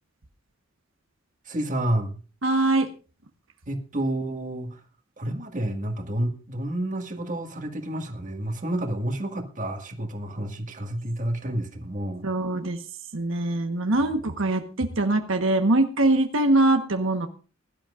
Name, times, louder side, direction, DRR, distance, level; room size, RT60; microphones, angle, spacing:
voice 1, 1.5-2.2 3.7-4.8 5.2-12.3, right 1 dB, 40° right, 4 dB, 1.8 m, -30 dB
voice 2, 2.4-2.9 12.2-12.8 13.1-17.3, right 2 dB, 75° right, 5 dB, 1.2 m, -23 dB
21.5 x 12.0 x 2.5 m, 0.36 s
head